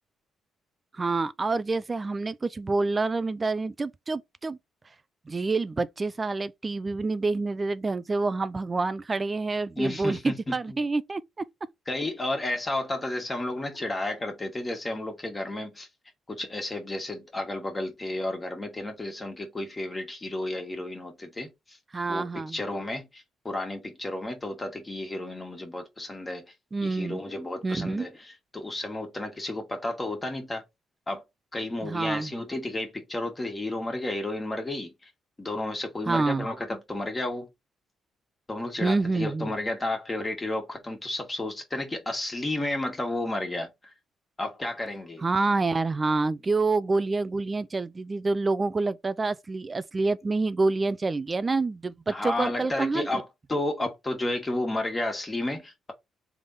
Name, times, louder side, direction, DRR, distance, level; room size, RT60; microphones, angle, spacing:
voice 1, 0.9-4.6 5.3-11.5 21.9-22.6 26.7-27.2 27.6-28.1 31.8-32.3 36.1-36.5 38.8-39.5 45.2-53.2, right 3 dB, 25° right, 0.3 m, -27 dB
voice 2, 9.8-10.6 11.9-15.9 16.3-21.8 22.1-26.4 26.8-30.6 31.1-31.2 31.5-35.1 35.4-37.5 38.5-43.9 44.4-45.2 52.1-55.9, left 1 dB, 20° left, 1.5 m, -32 dB
3.5 x 3.4 x 3.8 m
cardioid pair, 90°, 0 cm